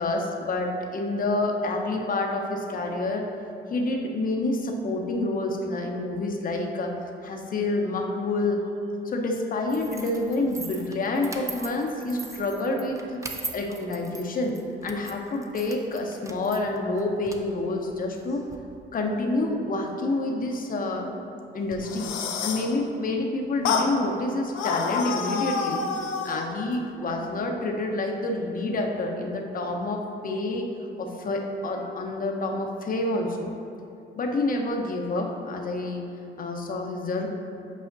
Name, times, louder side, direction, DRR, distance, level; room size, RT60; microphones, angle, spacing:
voice 1, 0.0-3.3 3.7-6.9 7.2-8.6 9.0-13.2 13.5-18.4 18.9-21.2 21.5-22.1 22.4-25.8 26.2-30.7 31.0-33.5 34.2-36.1 36.4-37.3, left 2 dB, 45° left, 2 dB, 0.8 m, -28 dB
sound 1, 9.7-18.6, right 2 dB, 15° right, 0.5 m, -41 dB
sound 2, 21.7-22.7 23.6-23.9 24.5-26.5, left 5 dB, 80° left, 0.6 m, -28 dB
8.4 x 4.9 x 2.6 m, 2.7 s
cardioid pair, 90°, 20 cm